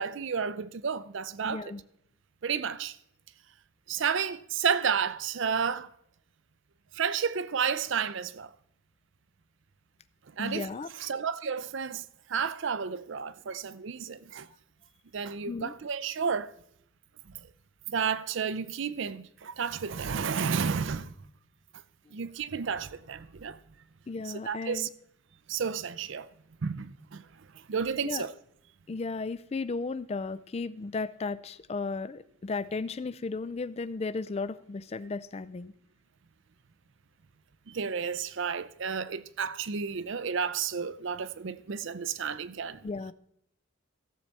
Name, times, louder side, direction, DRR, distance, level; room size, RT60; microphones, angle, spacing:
voice 1, 0.0-1.7 2.4-3.0 3.9-5.9 6.9-8.5 10.4-10.7 10.9-14.5 15.1-16.5 17.9-21.1 22.1-23.6 24.2-24.9 25.5-26.3 26.6-27.3 27.5-28.3 37.7-42.9, right 6 dB, 55° right, 0.5 m, -31 dB
voice 2, 1.4-1.8 10.4-10.9 15.5-15.7 24.1-24.9 28.0-28.3 28.9-35.7 42.8-43.1, left 4 dB, 30° left, 0.3 m, -35 dB
16.0 x 7.3 x 4.1 m
head